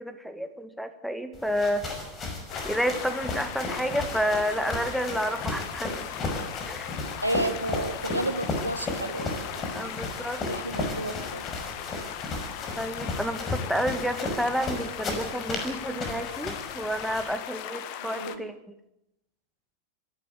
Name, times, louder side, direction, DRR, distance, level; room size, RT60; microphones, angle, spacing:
voice 1, 0.0-1.9 2.6-6.0 6.7-6.9 9.7-10.4 12.8-18.5, equal, ahead, 7 dB, 2.0 m, -30 dB
sound 1, 1.3-17.4, left 2 dB, 25° left, 5.6 m, -35 dB
sound 2, 2.5-18.4, left 11 dB, 45° left, 1.6 m, -38 dB
voice 2, 7.2-9.8 10.5-11.4 18.1-18.4, right 1 dB, 85° right, 8 dB, 1.9 m, -31 dB
26.0 x 12.5 x 8.3 m, 0.85 s
figure-of-eight pair, 90°, 0 cm